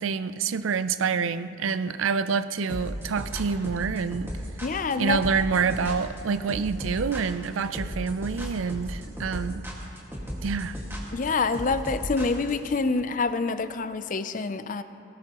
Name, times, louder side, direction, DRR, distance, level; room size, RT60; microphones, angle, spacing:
voice 1, 0.0-4.3 5.0-9.7 10.4-10.8, right 5 dB, 90° right, 13 dB, 0.5 m, -27 dB
sound 1, 2.7-12.7, equal, 10° right, 1.8 m, -35 dB
voice 2, 4.6-5.2 11.1-14.8, left 4 dB, 40° left, 12 dB, 0.5 m, -26 dB
18.5 x 18.0 x 3.0 m, 2.9 s
head